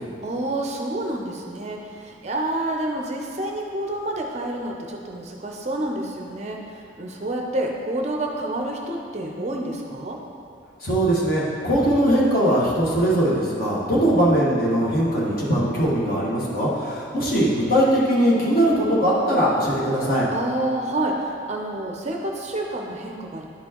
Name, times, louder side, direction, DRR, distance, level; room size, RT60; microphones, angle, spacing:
voice 1, 0.2-10.2 20.3-23.5, right 1 dB, 35° right, 1 dB, 0.5 m, -28 dB
voice 2, 10.8-20.2, right 1 dB, 45° left, -6 dB, 1.4 m, -20 dB
10.0 x 4.4 x 2.9 m, 2.6 s
head